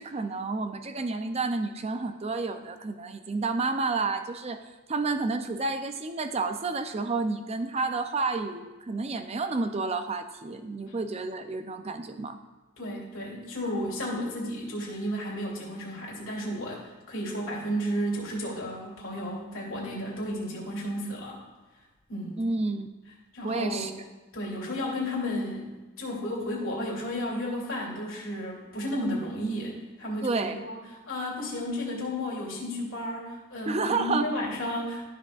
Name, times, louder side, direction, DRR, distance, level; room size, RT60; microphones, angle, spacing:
voice 1, 0.0-4.6 4.9-12.4 22.4-22.9 23.4-23.9 30.2-30.6 33.7-34.3, right 3 dB, 30° right, 8 dB, 0.4 m, -30 dB
voice 2, 12.8-21.4 22.1-22.4 23.3-24.0 24.3-25.7 26.0-35.1, equal, 65° left, -4 dB, 2.5 m, -33 dB
13.0 x 6.0 x 2.4 m, 1.2 s
head